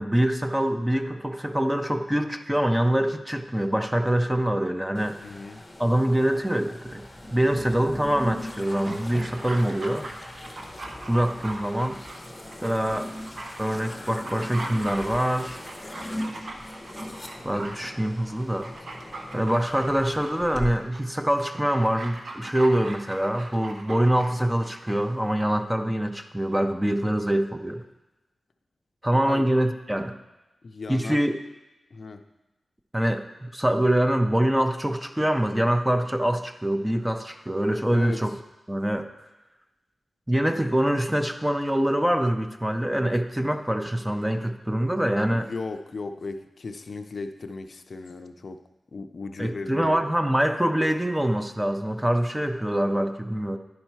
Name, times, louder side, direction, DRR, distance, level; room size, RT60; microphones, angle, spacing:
voice 1, 0.0-5.2 5.8-10.1 11.1-12.0 12.6-13.1 13.6-15.7 17.4-18.7 19.3-27.8 29.0-30.2 30.9-31.4 32.9-38.4 38.7-39.1 40.3-45.5 49.4-53.6, right 1 dB, 10° right, 7 dB, 0.5 m, -24 dB
sound 1, 4.9-20.7, left 1 dB, 15° left, 0.9 m, -40 dB
voice 2, 5.2-5.6 29.3-29.5 30.6-31.2 31.9-32.2 37.9-38.2 45.3-48.6 48.9-50.0, left 3 dB, 45° left, 7 dB, 0.5 m, -36 dB
Dog, 8.7-24.9 25.2-25.3, right 2 dB, 50° right, 1.0 m, -40 dB
10.5 x 5.5 x 4.5 m, 1.0 s
wide cardioid pair, 145°, 0 cm